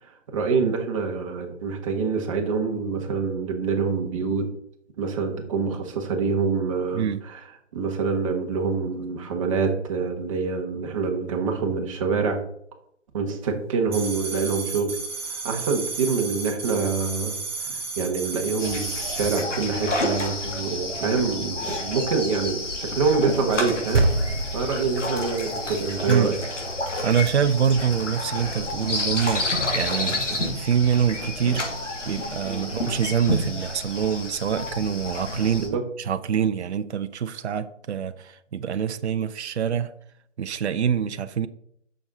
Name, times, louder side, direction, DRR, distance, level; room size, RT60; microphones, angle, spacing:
voice 1, 0.0-4.5 5.0-7.4 7.7-12.4 13.1-14.9 15.3-26.4 32.4-32.6 35.6-35.8, right 4 dB, 25° right, 1.2 m, -26 dB
sound 1, 13.9-19.4, right 4 dB, 5° right, 1.7 m, -33 dB
sound 2, 18.6-35.7, left 2 dB, 75° left, 2.7 m, -30 dB
sound 3, 23.9-28.5, right 2 dB, 50° right, 2.0 m, -29 dB
voice 2, 27.0-31.7 32.1-35.7 36.0-39.9 40.4-41.5, right 8 dB, 65° right, 0.6 m, -25 dB
7.0 x 6.4 x 3.9 m
figure-of-eight pair, 150°, 37 cm